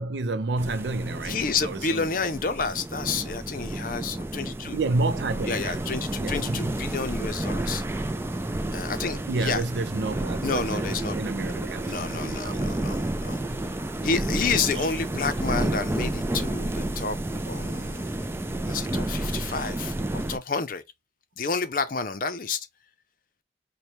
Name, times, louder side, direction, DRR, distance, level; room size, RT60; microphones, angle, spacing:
voice 1, 0.0-2.1 4.7-6.9 9.3-12.6 14.8-14.9, right 3 dB, 80° right, 0.5 m, -30 dB
sound 1, 0.6-20.4, right 1 dB, 15° right, 0.3 m, -31 dB
voice 2, 1.2-4.8 5.5-7.8 8.7-9.6 10.3-11.5 11.9-13.4 14.0-17.2 17.5-18.2 18.6-20.8 21.4-22.7, left 4 dB, 50° left, 0.6 m, -30 dB
4.4 x 2.2 x 3.1 m
head